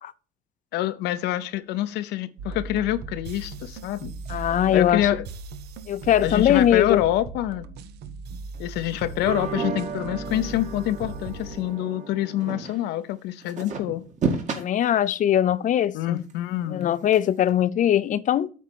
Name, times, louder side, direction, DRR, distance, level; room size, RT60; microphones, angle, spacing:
voice 1, 0.7-4.1 4.7-5.2 6.2-7.7 8.6-14.0 15.9-16.9, left 13 dB, 85° left, 0.7 m, -26 dB
sound 1, 2.4-11.6, right 4 dB, 75° right, 0.8 m, -38 dB
voice 2, 4.3-5.1 5.9-7.0 14.6-16.2 16.7-18.5, left 10 dB, 50° left, 0.5 m, -21 dB
sound 2, 9.2-12.9 13.4-14.6 16.2-16.3 16.8-16.9 17.1-17.2 17.5-17.6, right 4 dB, 45° right, 2.0 m, -31 dB
8.4 x 4.3 x 6.9 m
cardioid pair, 110°, 17 cm